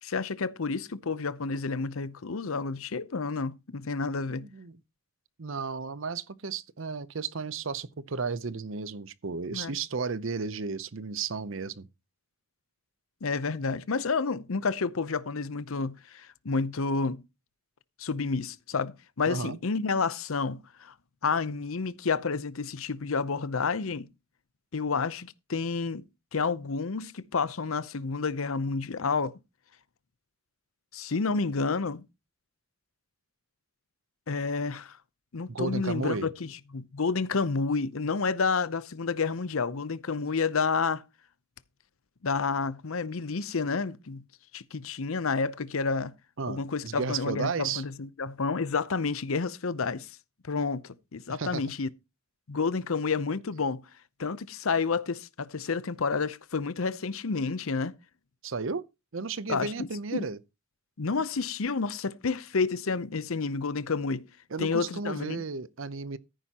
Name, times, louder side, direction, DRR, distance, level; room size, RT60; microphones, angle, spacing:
voice 1, 0.0-4.5 9.5-9.7 13.2-17.2 18.0-20.9 21.2-24.1 24.7-26.0 26.3-29.3 30.9-32.0 34.3-35.0 35.3-41.0 42.2-44.2 44.5-46.1 46.5-50.1 50.4-51.9 52.5-53.8 54.2-57.9 59.5-60.3 61.0-64.3 64.6-65.4, left 4 dB, 75° left, 0.7 m, -30 dB
voice 2, 4.3-4.8 5.4-11.9 19.3-19.6 35.5-36.3 46.4-47.8 51.4-51.6 58.4-58.8 59.1-60.4 64.5-66.2, right 4 dB, 65° right, 0.7 m, -33 dB
14.0 x 10.0 x 2.9 m
head